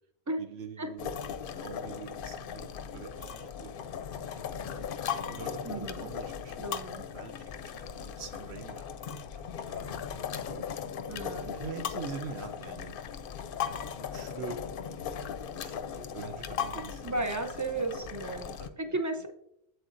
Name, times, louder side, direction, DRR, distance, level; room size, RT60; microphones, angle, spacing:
voice 1, 0.4-4.2 4.7-4.9 5.2-10.6 11.2-13.0 13.8-17.3 17.7-17.9 18.5-19.0, right 6 dB, 75° right, 7 dB, 0.9 m, -45 dB
sound 1, 1.0-18.7, left 8 dB, 65° left, 0.7 m, -38 dB
voice 2, 5.6-6.1 6.6-7.0 11.1-11.5 17.0-19.3, right 2 dB, 30° right, 6 dB, 0.3 m, -34 dB
7.9 x 7.8 x 2.5 m, 0.82 s
omnidirectional pair, 1.1 m